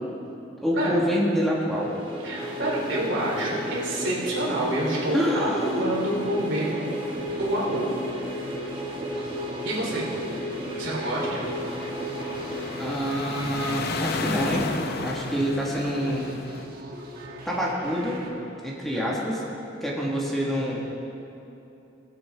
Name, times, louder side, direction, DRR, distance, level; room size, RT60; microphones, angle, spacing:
voice 1, 0.6-1.9 5.1-6.0 12.8-14.7 15.0-16.3 17.4-18.2 18.6-19.4 19.8-20.8, equal, ahead, -5 dB, 1.4 m, -26 dB
sound 1, 1.7-13.5, equal, 25° right, 1.5 m, -34 dB
voice 2, 2.2-6.9 7.4-7.9 9.6-10.1 10.7-11.4 15.2-15.3 18.9-19.1, right 1 dB, 70° right, -4 dB, 2.8 m, -28 dB
sound 2, 2.4-18.3, right 1 dB, 50° right, 1.3 m, -42 dB
sound 3, 7.3-16.6, left 3 dB, 55° left, 0.6 m, -35 dB
19.0 x 7.8 x 3.4 m, 2.8 s
head